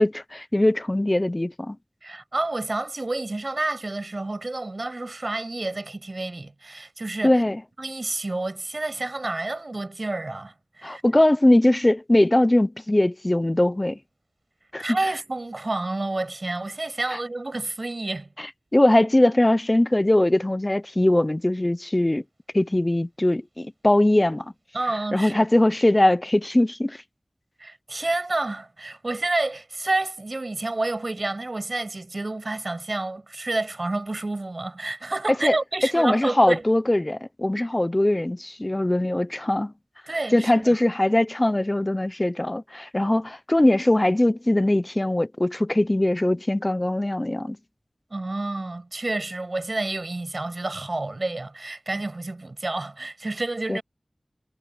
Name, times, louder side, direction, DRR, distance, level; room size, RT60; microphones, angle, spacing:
voice 1, 0.0-1.8 7.2-7.6 10.8-14.0 14.7-14.8 18.4-18.5 18.7-22.2 22.5-24.4 25.1-27.0 35.4-35.6 35.9-39.7 40.3-47.6 53.7-53.8, left 1 dB, 30° left, 0.7 m, -21 dB
voice 2, 2.0-7.4 7.8-11.0 14.8-18.3 24.7-25.5 27.6-36.6 37.6-37.7 40.1-40.8 48.1-53.8, right 2 dB, 55° right, 7.5 m, -29 dB
wide cardioid pair, 55°, 0 cm